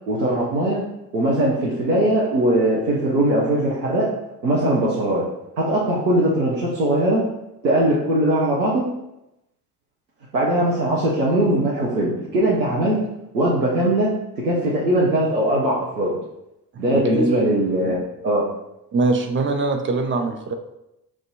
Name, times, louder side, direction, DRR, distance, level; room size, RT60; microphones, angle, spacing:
voice 1, 0.1-0.8 1.1-4.1 4.4-5.2 5.6-7.3 7.6-8.9 10.3-13.0 13.3-16.2 16.8-18.4, right 1 dB, 85° right, -6 dB, 0.7 m, -20 dB
voice 2, 16.7-17.3 18.9-20.5, right 3 dB, 25° right, 5 dB, 0.6 m, -23 dB
6.0 x 2.5 x 2.8 m, 0.90 s
figure-of-eight pair, 45°, 50 cm